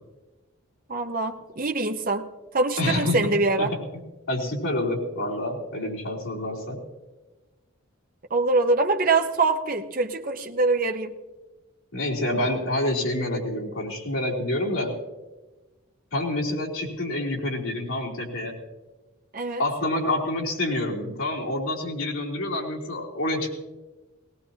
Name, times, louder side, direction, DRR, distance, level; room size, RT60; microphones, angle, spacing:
voice 1, 0.9-2.3 2.5-3.7 8.3-11.1 19.3-19.6, right 3 dB, 40° right, 4 dB, 0.9 m, -24 dB
voice 2, 2.8-3.2 3.6-4.0 4.3-6.8 11.9-15.0 16.1-18.5 19.6-23.5, left 1 dB, 75° left, -3 dB, 3.4 m, -27 dB
19.0 x 18.5 x 2.9 m, 1.2 s
head